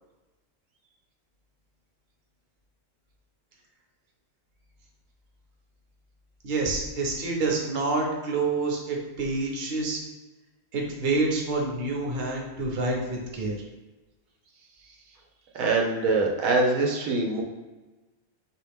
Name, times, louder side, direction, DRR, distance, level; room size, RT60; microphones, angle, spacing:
voice 1, 6.4-10.0 10.7-13.6, right 3 dB, 50° right, 0 dB, 1.0 m, -27 dB
voice 2, 15.5-17.4, right 3 dB, 85° right, 0 dB, 1.1 m, -24 dB
4.8 x 2.9 x 3.5 m, 1.2 s
omnidirectional pair, 1.4 m